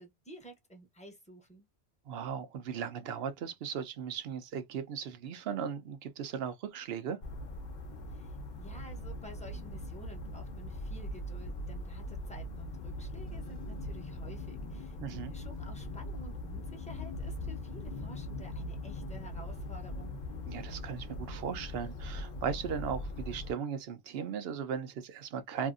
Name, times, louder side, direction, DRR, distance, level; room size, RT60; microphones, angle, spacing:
voice 1, 0.0-1.7 8.1-20.2, right 1 dB, 10° left, 0.7 m, -52 dB
voice 2, 2.1-7.2 15.0-15.3 20.5-25.7, right 7 dB, 70° right, 0.8 m, -37 dB
sound 1, 7.2-23.5, left 1 dB, 50° left, 0.8 m, -41 dB
2.6 x 2.5 x 2.4 m
omnidirectional pair, 1.1 m